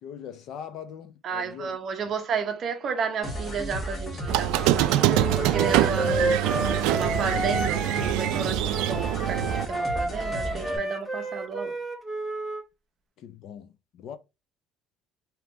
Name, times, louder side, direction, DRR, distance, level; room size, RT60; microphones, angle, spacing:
voice 1, 0.0-1.8 10.1-10.2 13.2-14.2, left 8 dB, 50° left, 0.6 m, -41 dB
voice 2, 1.2-6.4 6.9-11.8, right 6 dB, 35° right, 0.7 m, -32 dB
sound 1, 3.2-10.8, equal, 20° left, 1.5 m, -34 dB
Squeak, 4.3-9.6, right 15 dB, 80° right, 0.3 m, -25 dB
Wind instrument woodwind instrument, 5.1-12.6, right 1 dB, ahead, 0.7 m, -31 dB
3.4 x 2.9 x 3.6 m
cardioid pair, 170°, 0 cm